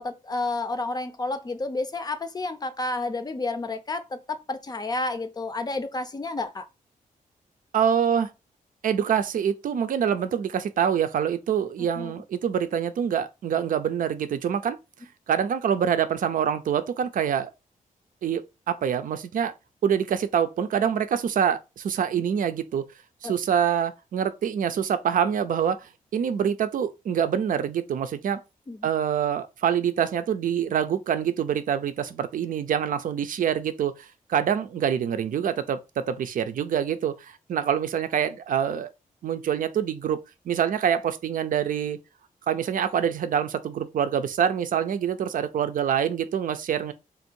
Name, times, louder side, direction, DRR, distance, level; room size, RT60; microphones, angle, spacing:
voice 1, 0.0-6.7 11.8-12.1 23.2-23.3 28.7-28.8, left 2 dB, 30° left, 0.5 m, -30 dB
voice 2, 7.7-8.3 8.8-14.8 15.3-17.5 18.2-19.5 19.8-22.8 23.2-28.4 28.8-38.9 39.2-40.2 40.5-42.0 42.5-46.9, right 8 dB, 70° right, 0.5 m, -25 dB
3.5 x 2.6 x 4.4 m
wide cardioid pair, 115°, 15 cm